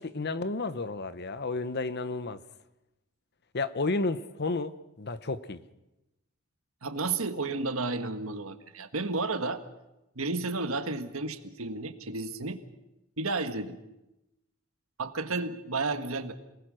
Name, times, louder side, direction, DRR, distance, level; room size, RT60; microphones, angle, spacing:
voice 1, 0.0-2.4 3.5-5.6, left 3 dB, 50° left, 1.0 m, -32 dB
voice 2, 6.8-9.6 10.1-12.6 13.2-13.8 15.0-16.3, right 3 dB, 90° right, 1.6 m, -32 dB
27.0 x 19.5 x 6.3 m
head